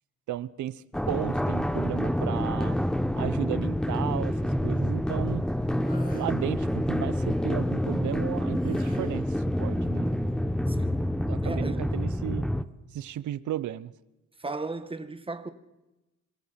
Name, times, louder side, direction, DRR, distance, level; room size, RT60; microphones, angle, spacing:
voice 1, 0.3-2.8 3.2-5.5 6.1-10.1 11.3-12.5 12.9-13.9, right 12 dB, 75° right, 1.0 m, -34 dB
sound 1, 0.9-12.6, equal, ahead, 1.1 m, -27 dB
sound 2, 5.8-6.3 8.6-9.3, left 3 dB, 30° left, 7.2 m, -44 dB
voice 2, 10.7-11.0 11.4-11.9 14.4-15.5, right 3 dB, 20° right, 1.8 m, -36 dB
26.5 x 23.0 x 5.9 m
cardioid pair, 90°, 30 cm